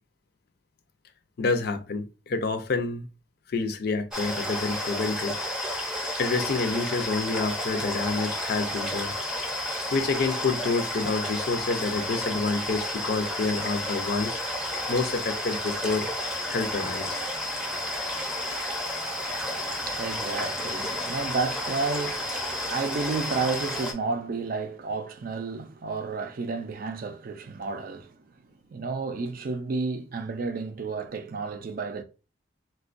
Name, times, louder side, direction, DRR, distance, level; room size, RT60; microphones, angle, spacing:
voice 1, 1.4-3.1 3.5-5.4 6.2-9.1 9.9-14.4 14.9-16.1 16.5-17.3, left 3 dB, 60° left, 0.5 m, -28 dB
sound 1, 4.1-23.9, left 1 dB, 5° right, 0.6 m, -31 dB
voice 2, 19.4-28.1 28.7-32.0, right 4 dB, 50° right, 0.4 m, -31 dB
4.3 x 2.2 x 2.4 m
head